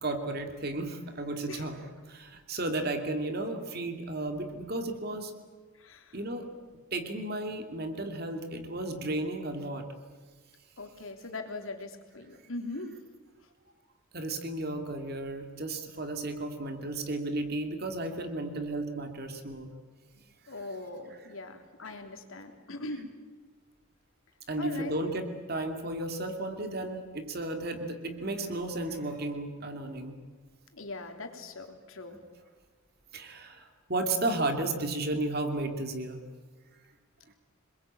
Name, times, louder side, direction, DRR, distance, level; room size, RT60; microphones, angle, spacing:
voice 1, 0.0-5.3 6.1-6.5 6.9-9.8 14.1-19.7 20.6-20.7 21.9-22.0 24.5-30.2 32.1-32.2 33.1-36.2, right 2 dB, 50° right, 6 dB, 2.6 m, -34 dB
voice 2, 5.8-6.1 10.8-12.9 20.5-23.1 24.6-24.9 30.7-32.2, left 2 dB, 80° left, 4 dB, 3.1 m, -40 dB
27.0 x 21.0 x 8.7 m, 1.4 s
head